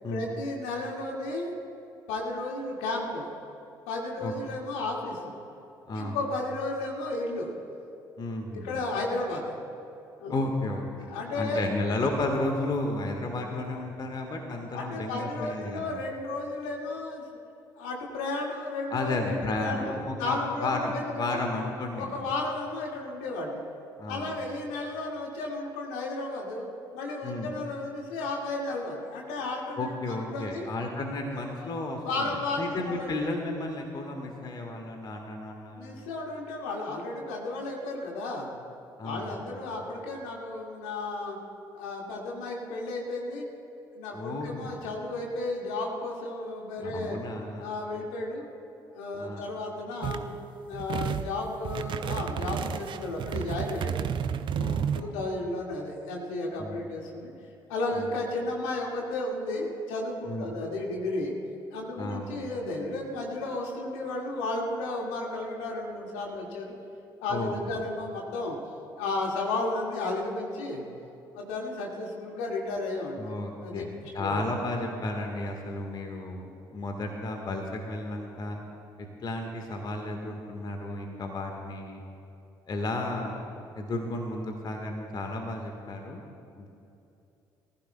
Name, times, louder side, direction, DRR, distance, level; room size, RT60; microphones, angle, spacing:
voice 1, 0.1-1.5 2.1-3.3 3.9-5.4 5.9-7.5 8.6-9.5 10.2-10.4 11.0-11.7 14.7-17.2 17.8-21.4 21.9-23.6 24.1-30.7 31.5-31.7 32.0-33.1 35.7-38.5 39.0-41.4 41.7-43.5 43.9-47.2 47.6-48.5 48.9-50.4 50.6-54.1 54.5-57.3 57.7-61.3 61.7-66.7 67.2-68.6 69.0-70.8 71.3-73.3 73.6-74.4, left 2 dB, 70° left, -1 dB, 2.1 m, -33 dB
voice 2, 8.2-8.7 10.3-11.1 11.3-15.9 18.9-22.1 24.0-24.3 27.2-27.5 29.8-35.9 39.0-39.6 44.1-44.8 46.8-47.7 49.2-49.4 54.6-55.2 56.6-56.8 57.9-58.0 60.3-60.5 62.0-62.5 67.3-67.5 73.2-73.9 74.1-78.6 79.0-82.0 82.7-83.4 83.7-86.2 86.6-86.7, left 2 dB, 40° left, 3 dB, 1.5 m, -33 dB
sound 1, 50.0-50.3 50.7-51.3 51.6-55.0, right 8 dB, 45° right, 0.6 m, -31 dB
23.0 x 15.0 x 2.3 m, 2.8 s
figure-of-eight pair, 50°, 11 cm